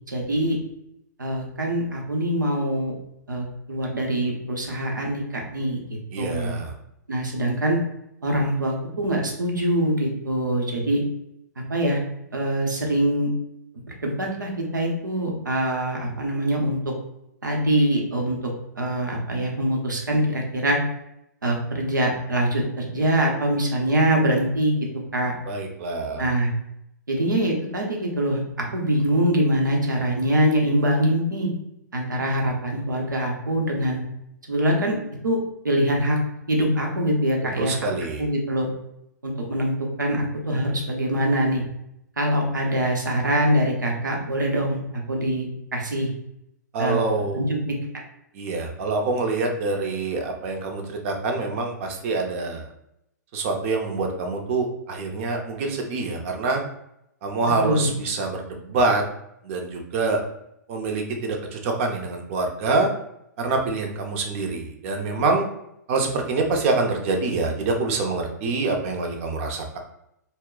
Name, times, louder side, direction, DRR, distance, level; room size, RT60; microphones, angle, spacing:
voice 1, 0.1-0.6 1.2-2.9 3.3-6.5 7.1-7.8 8.2-11.0 11.7-12.0 12.3-13.3 13.9-16.9 17.4-18.4 18.8-20.8 21.4-24.8 25.1-25.3 26.2-26.5 27.1-31.5 31.9-34.0 34.5-35.0 35.2-35.4 35.6-36.2 36.5-37.8 38.2-38.7 39.2-39.7 40.0-41.6 42.2-45.5 45.7-46.1 46.8-47.0 47.3-47.8 57.6-57.9, right 1 dB, 85° right, 0 dB, 0.7 m, -23 dB
voice 2, 6.1-6.7 25.5-26.3 37.6-38.3 46.7-47.5 48.3-52.7 53.3-56.6 57.2-59.0 59.4-60.2 60.7-62.9 63.4-65.4 65.9-69.8, right 3 dB, 45° right, 3 dB, 0.6 m, -25 dB
2.2 x 2.0 x 3.6 m, 0.80 s
hypercardioid pair, 115°, 10 cm